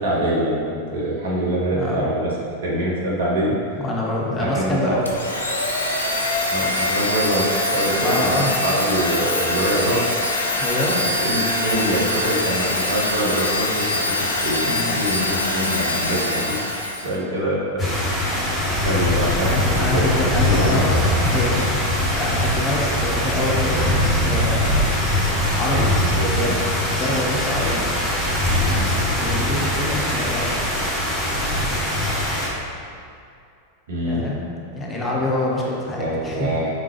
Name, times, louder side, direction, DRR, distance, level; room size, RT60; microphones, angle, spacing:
voice 1, 0.0-2.3 2.6-3.6 4.5-5.0 6.5-10.1 11.2-16.6 17.0-17.6 18.0-19.5 19.8-20.0 20.4-20.8 26.1-26.6 28.6-28.9 33.9-34.3 36.0-36.7, right 1 dB, 55° right, -5 dB, 1.0 m, -24 dB
voice 2, 1.7-2.1 3.8-5.0 8.0-8.7 10.5-11.0 14.7-15.0 19.4-24.8 25.6-25.9 26.9-27.8 29.2-30.5 34.0-36.5, left 1 dB, 20° left, -3 dB, 0.7 m, -26 dB
Domestic sounds home sounds, 5.1-17.2, left 2 dB, 80° left, 0.5 m, -23 dB
sound 1, 17.8-32.5, left 1 dB, 10° right, 1.3 m, -21 dB
4.6 x 3.7 x 3.0 m, 2.5 s
figure-of-eight pair, 90°, 0 cm